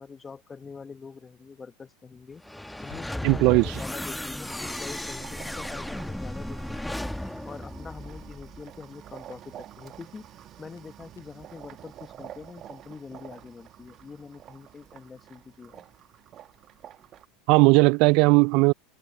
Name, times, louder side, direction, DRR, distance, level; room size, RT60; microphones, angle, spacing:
voice 1, 0.0-2.4 2.8-7.0 7.4-15.8, left 5 dB, 20° left, 1.2 m, -44 dB
sound 1, 2.4-8.7, left 1 dB, 5° left, 1.0 m, -35 dB
voice 2, 3.2-3.7 17.5-18.7, right 27 dB, 60° right, 0.3 m, -18 dB
sound 2, 5.2-17.3, right 11 dB, 45° right, 1.1 m, -48 dB
Crackle, 10.1-11.5, left 10 dB, 85° left, 7.8 m, -61 dB
open air
hypercardioid pair, 90°, 0 cm